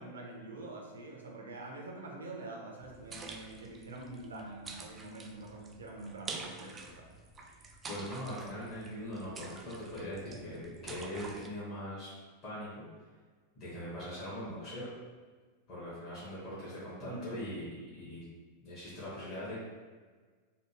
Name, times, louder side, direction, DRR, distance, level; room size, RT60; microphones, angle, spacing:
voice 1, 0.0-7.1 17.0-17.3, right 2 dB, 70° right, 0 dB, 0.6 m, -45 dB
sound 1, 2.8-11.5, right 3 dB, 20° right, 0.3 m, -48 dB
voice 2, 7.9-12.1 12.4-12.9 13.5-14.9 15.7-18.2 18.6-19.6, equal, 35° left, -10 dB, 1.2 m, -41 dB
3.4 x 2.3 x 3.1 m, 1.4 s
figure-of-eight pair, 90°, 0 cm